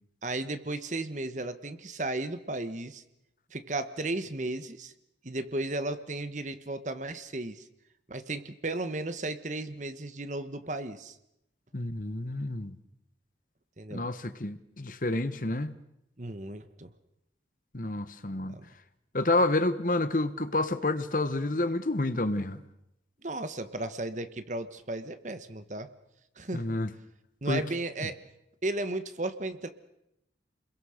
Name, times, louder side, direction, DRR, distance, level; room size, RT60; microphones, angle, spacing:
voice 1, 0.2-3.0 3.5-4.9 5.2-7.7 8.1-11.2 13.8-14.0 16.2-16.9 18.5-18.7 23.2-25.9 26.4-26.8 27.4-28.2 28.6-29.7, right 2 dB, 40° right, 1.3 m, -34 dB
voice 2, 11.7-12.7 13.9-15.7 17.7-18.6 19.1-22.6 26.5-26.9 27.5-27.7 28.0-28.1, left 2 dB, 45° left, 1.2 m, -29 dB
29.5 x 22.0 x 6.6 m
head